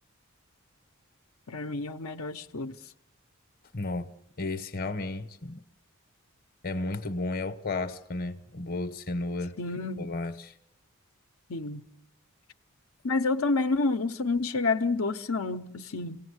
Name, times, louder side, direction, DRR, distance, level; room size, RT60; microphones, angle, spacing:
voice 1, 1.5-2.7 9.6-10.1 11.5-11.8 13.0-16.2, left 3 dB, 80° left, 0.9 m, -29 dB
voice 2, 3.7-4.1 4.4-5.6 6.6-9.6 10.0-10.5, left 2 dB, 45° left, 1.0 m, -33 dB
27.5 x 18.5 x 8.1 m
head